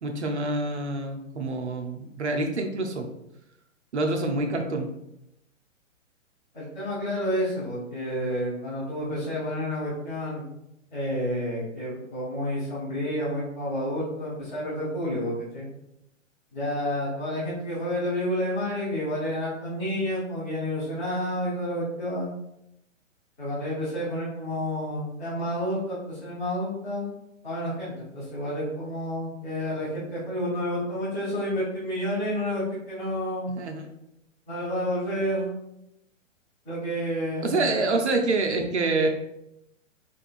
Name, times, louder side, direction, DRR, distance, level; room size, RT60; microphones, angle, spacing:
voice 1, 0.0-3.1 3.9-4.9 33.5-34.0 37.4-39.1, right 2 dB, 60° right, 4 dB, 0.7 m, -26 dB
voice 2, 6.5-10.5 10.9-15.7 16.5-22.3 23.4-27.1 27.4-33.5 34.5-35.5 36.6-37.7, equal, 5° left, -16 dB, 0.4 m, -30 dB
4.9 x 2.5 x 2.4 m, 0.83 s
figure-of-eight pair, 120°, 39 cm